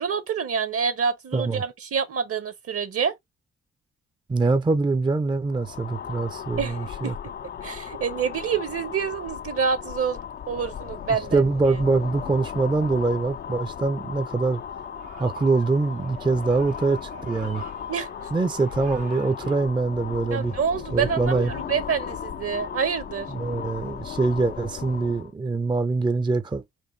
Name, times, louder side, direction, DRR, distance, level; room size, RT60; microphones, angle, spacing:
voice 1, 0.0-3.1 6.6-7.3 7.6-10.2 10.5-11.5 17.9-18.1 20.3-23.3, right 6 dB, 50° right, 0.9 m, -27 dB
voice 2, 1.3-1.6 4.3-7.1 11.1-14.6 15.2-17.6 18.3-20.6 20.9-21.5 23.3-26.6, right 3 dB, 15° right, 0.5 m, -24 dB
sound 1, 5.4-25.3, left 8 dB, 35° left, 0.4 m, -36 dB
sound 2, 14.2-19.6, right 5 dB, 75° right, 1.0 m, -47 dB
4.5 x 2.5 x 3.1 m
hypercardioid pair, 40°, 29 cm